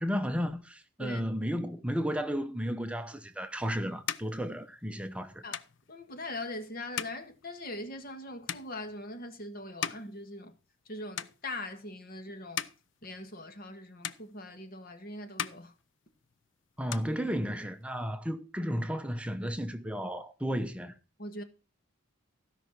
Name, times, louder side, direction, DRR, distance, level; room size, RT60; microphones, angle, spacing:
voice 1, 0.0-5.4 16.8-21.0, equal, 5° right, 0.9 m, -33 dB
sound 1, 3.2-10.9 11.1-11.9 12.3-13.8 14.0-14.9 15.2-16.5 16.7-17.8, left 9 dB, 65° left, 0.6 m, -41 dB
voice 2, 5.9-10.6 10.9-12.6 13.0-15.7 21.2-21.4, left 1 dB, 45° left, 1.8 m, -41 dB
15.5 x 5.9 x 6.0 m
head